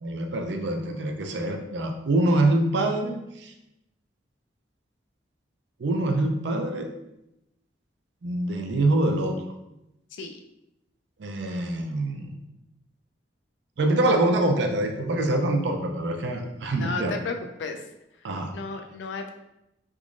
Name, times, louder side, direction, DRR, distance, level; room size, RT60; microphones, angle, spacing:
voice 1, 0.0-3.5 5.8-6.9 8.2-9.3 11.2-12.4 13.8-17.1 18.2-18.5, right 1 dB, 75° right, 3 dB, 0.5 m, -25 dB
voice 2, 16.8-17.8 18.5-19.3, left 3 dB, 80° left, 5 dB, 0.4 m, -33 dB
3.6 x 3.0 x 2.4 m, 0.87 s
head